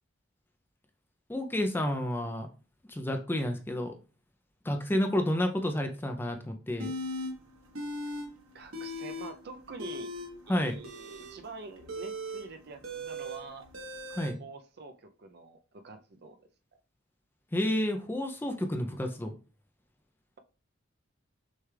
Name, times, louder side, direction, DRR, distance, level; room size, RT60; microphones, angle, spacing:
voice 1, 1.3-2.5 2.9-3.9 4.6-6.9 10.5-10.8 14.1-14.4 17.5-19.3, left 1 dB, 10° left, 5 dB, 0.4 m, -30 dB
sound 1, 6.8-7.3 7.7-8.3 8.5-9.3 9.7-14.3, equal, 90° right, 1.2 m, -38 dB
voice 2, 8.5-10.1 10.5-13.7 14.4-16.5, right 3 dB, 50° right, 6 dB, 0.5 m, -46 dB
6.3 x 2.3 x 3.2 m, 0.37 s
head